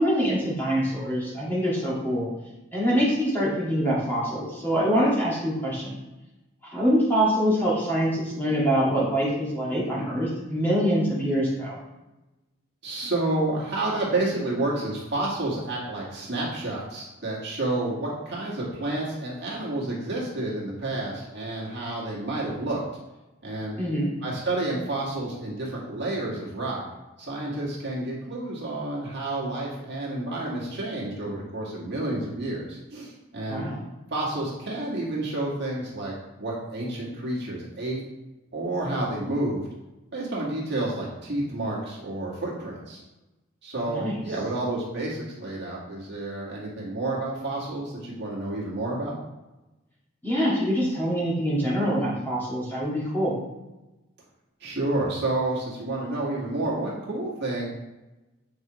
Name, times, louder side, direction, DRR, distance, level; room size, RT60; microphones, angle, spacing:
voice 1, 0.0-2.3 2.7-6.0 6.6-11.8 23.8-24.1 33.5-33.8 43.9-44.2 50.2-53.3, equal, 10° left, -7 dB, 1.8 m, -24 dB
voice 2, 12.8-22.8 23.4-23.8 24.2-26.8 27.2-33.6 34.1-38.0 38.5-39.6 40.1-43.0 43.6-49.2 54.6-57.7, right 2 dB, 55° right, -5 dB, 1.8 m, -30 dB
8.5 x 4.8 x 3.1 m, 1.0 s
head